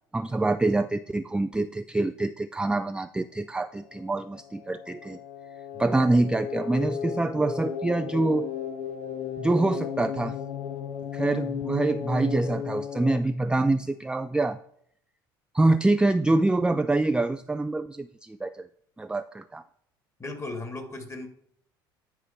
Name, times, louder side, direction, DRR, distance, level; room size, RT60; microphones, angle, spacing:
voice 1, 0.1-5.2 5.8-8.5 9.4-10.4 11.1-14.6 15.5-18.7 19.0-19.6, right 2 dB, 10° right, 10 dB, 0.4 m, -25 dB
sound 1, 3.8-13.2, left 8 dB, 60° left, 1.0 m, -35 dB
voice 2, 20.2-21.3, left 2 dB, 25° left, 7 dB, 2.1 m, -36 dB
10.0 x 4.5 x 5.7 m, 0.69 s
hypercardioid pair, 65°, 12 cm